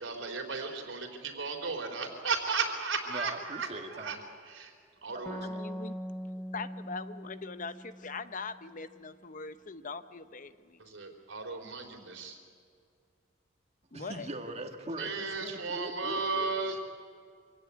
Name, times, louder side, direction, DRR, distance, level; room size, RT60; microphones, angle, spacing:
voice 1, 0.0-4.2 4.5-4.7 5.0-5.5 10.8-12.4 15.0-16.8, right 4 dB, 75° right, 4 dB, 3.8 m, -35 dB
voice 2, 3.1-4.2 5.1-5.9 13.9-16.8, right 1 dB, 35° right, 3 dB, 1.8 m, -42 dB
sound 1, 5.3-8.8, equal, 10° left, 0.9 m, -41 dB
voice 3, 5.4-5.9 6.5-10.8 13.9-14.3, left 4 dB, 40° left, 12 dB, 0.8 m, -41 dB
25.5 x 17.0 x 9.4 m, 2.3 s
head